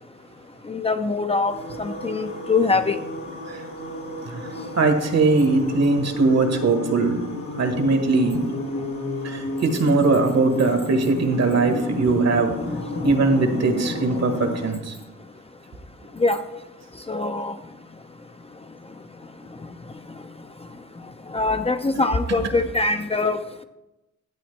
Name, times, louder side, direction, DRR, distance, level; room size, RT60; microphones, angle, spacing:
voice 1, 0.7-1.5 1.8-2.9 11.2-11.3 11.6-11.8 12.7-14.2 16.2-16.4 17.1-17.5 21.3-23.6, left 3 dB, 20° left, 7 dB, 0.5 m, -24 dB
sound 1, 1.5-14.7, left 2 dB, 70° left, 1.9 m, -33 dB
voice 2, 4.2-7.2 7.6-8.4 9.2-12.6 13.0-15.0, right 3 dB, 60° right, 6 dB, 1.4 m, -21 dB
11.5 x 8.5 x 3.3 m, 0.97 s
cardioid pair, 85°, 29 cm